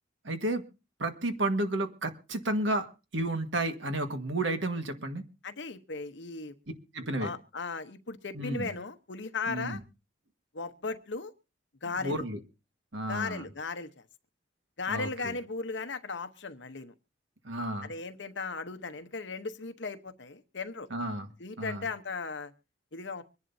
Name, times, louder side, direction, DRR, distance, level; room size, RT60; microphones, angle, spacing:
voice 1, 0.2-0.6 1.0-2.9 3.1-5.2 6.9-7.3 8.3-8.7 9.5-9.8 12.0-12.4 12.9-13.5 14.9-15.3 17.4-17.9 20.9-21.3 21.6-21.8, right 1 dB, 75° right, 7 dB, 1.6 m, -32 dB
voice 2, 5.4-6.5 7.2-9.8 10.5-11.3 11.8-12.2 13.1-14.0 14.8-16.9 17.8-20.9 21.4-22.5 22.9-23.2, left 4 dB, 70° left, 8 dB, 1.0 m, -37 dB
24.5 x 11.0 x 2.7 m, 0.31 s
head